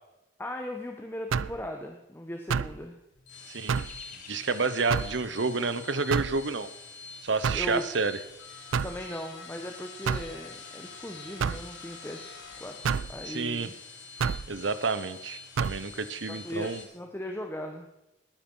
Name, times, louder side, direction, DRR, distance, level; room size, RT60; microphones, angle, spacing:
voice 1, 0.4-3.0 7.5-7.8 8.8-13.7 16.3-17.9, left 1 dB, 10° left, 3 dB, 1.1 m, -38 dB
sound 1, 1.3-1.6 2.5-2.8 3.7-4.0 4.9-5.2 6.1-6.4 7.4-7.7 8.7-9.0 10.1-10.3 11.4-11.7 12.8-13.1 14.2-14.5 15.6-15.8, right 6 dB, 80° right, 0.4 m, -28 dB
sound 2, 2.8-7.9 8.1-8.4, left 5 dB, 40° left, 2.4 m, -51 dB
sound 3, 3.1-16.8, left 4 dB, 65° left, 4.3 m, -46 dB
voice 2, 3.5-3.8 4.3-6.7 7.2-8.2 13.3-13.7 14.5-16.8, right 4 dB, 65° right, 13 dB, 0.9 m, -29 dB
19.5 x 10.0 x 5.5 m, 0.94 s
head